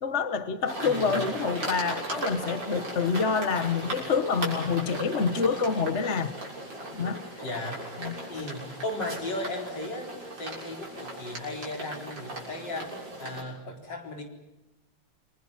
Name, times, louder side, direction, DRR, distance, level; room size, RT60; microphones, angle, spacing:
voice 1, 0.0-6.3 6.9-7.2 8.0-8.1, left 5 dB, 40° left, 10 dB, 1.4 m, -27 dB
sound 1, 0.7-13.4, right 1 dB, 60° right, 7.4 m, -37 dB
voice 2, 0.8-1.2 7.4-8.0 8.3-10.1 10.4-14.2, left 2 dB, 55° left, 3 dB, 4.9 m, -36 dB
29.0 x 23.5 x 7.4 m, 1.0 s
omnidirectional pair, 2.2 m